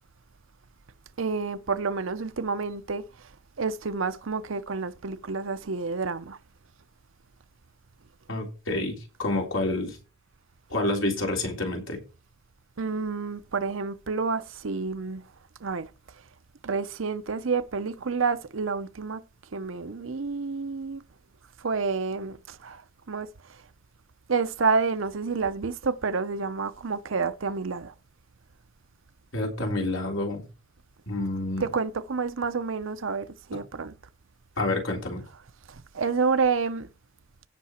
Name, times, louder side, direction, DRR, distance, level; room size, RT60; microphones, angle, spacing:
voice 1, 1.2-3.0 3.6-6.4 12.8-15.2 15.6-15.9 16.6-19.2 19.5-21.0 21.6-22.8 23.1-23.3 24.3-27.9 31.6-33.9 35.7-36.9, right 4 dB, 75° right, 0.7 m, -29 dB
voice 2, 8.3-10.0 10.7-12.0 29.3-30.4 31.1-31.6 34.6-35.2, left 2 dB, 75° left, 3.4 m, -28 dB
16.5 x 5.8 x 4.3 m
head